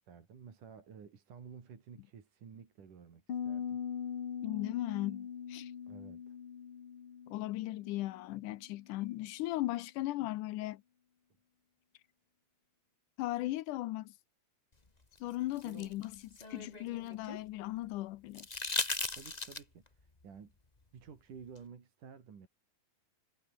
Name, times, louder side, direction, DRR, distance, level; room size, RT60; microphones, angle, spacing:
voice 1, 0.1-3.8 5.9-6.4 15.6-15.9 19.1-20.5 20.9-22.5, right 6 dB, 65° right, 4.9 m, -52 dB
Piano, 3.3-8.9, left 7 dB, 45° left, 2.3 m, -42 dB
voice 2, 4.4-5.7 7.3-10.8 13.2-14.1 15.2-16.2 16.5-18.7, left 16 dB, 75° left, 2.1 m, -37 dB
sound 1, 15.2-17.4 18.3-19.9 21.6-21.7, left 3 dB, 20° left, 1.2 m, -38 dB
omnidirectional pair, 4.0 m